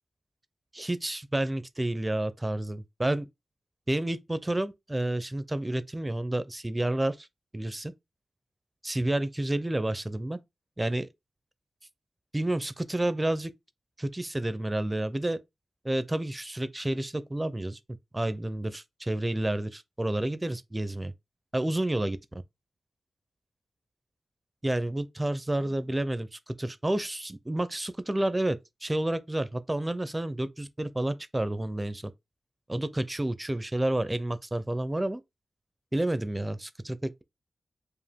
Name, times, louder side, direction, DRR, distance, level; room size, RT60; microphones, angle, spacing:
voice 1, 0.7-3.3 3.9-7.3 7.5-7.9 8.8-10.4 10.8-11.1 12.3-13.5 14.0-15.4 15.8-17.8 18.1-21.1 21.5-22.4 24.6-32.1 32.7-35.2 35.9-37.2, right 1 dB, 15° right, 0.4 m, -30 dB
4.9 x 2.5 x 3.4 m
wide cardioid pair, 125°, 0 cm